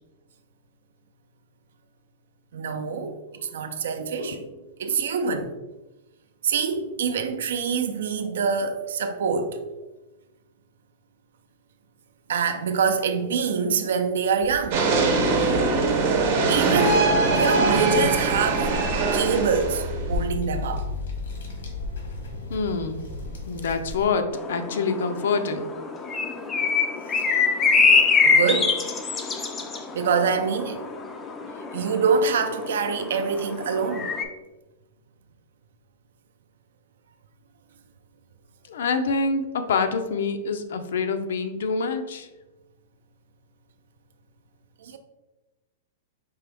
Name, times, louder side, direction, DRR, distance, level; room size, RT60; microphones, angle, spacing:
voice 1, 2.5-4.4 4.8-5.5 6.4-9.6 12.3-14.9 16.5-17.1 17.3-18.7 19.1-20.8 27.1-27.2 28.2-28.7 29.9-30.8 31.7-34.1 44.8-45.0, right 5 dB, 75° right, 0.5 m, -25 dB
voice 2, 4.0-4.5 22.5-23.0 23.5-25.7 38.7-42.3, left 4 dB, 70° left, 0.5 m, -26 dB
sound 1, 14.4-24.1, left 2 dB, 85° left, 1.3 m, -34 dB
sound 2, 14.7-20.2, right 3 dB, 45° right, 0.9 m, -22 dB
sound 3, 24.3-34.2, left 4 dB, 15° left, 0.3 m, -24 dB
4.6 x 2.9 x 3.4 m
supercardioid pair, 170°, 0 cm